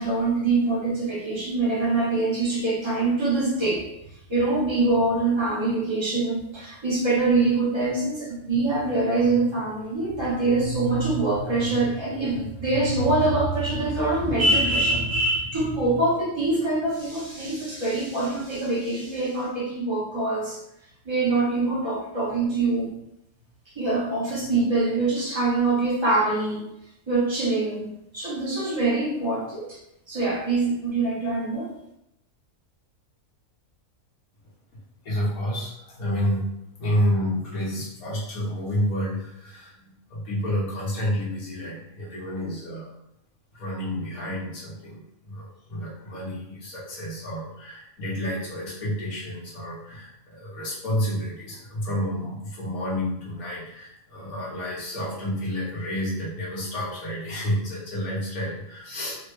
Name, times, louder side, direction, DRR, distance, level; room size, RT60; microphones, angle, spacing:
voice 1, 0.0-3.8 4.3-20.6 21.0-22.9 23.8-26.6 27.1-29.8 30.1-31.7, right 2 dB, 25° right, -6 dB, 0.6 m, -24 dB
voice 2, 35.0-36.5 36.8-42.9 43.5-59.2, equal, 80° left, -7 dB, 1.5 m, -30 dB
3.4 x 2.1 x 3.1 m, 0.81 s
omnidirectional pair, 1.5 m